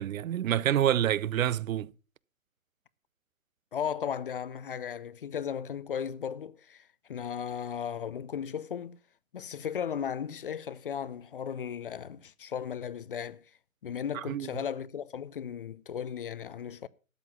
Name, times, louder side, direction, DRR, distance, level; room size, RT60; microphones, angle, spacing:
voice 1, 0.0-1.9 14.1-14.5, right 11 dB, 70° right, 0.6 m, -27 dB
voice 2, 3.7-6.8 7.1-9.0 9.3-13.4 13.8-16.9, left 8 dB, 40° left, 0.5 m, -36 dB
13.0 x 7.5 x 5.7 m
hypercardioid pair, 150°, 42 cm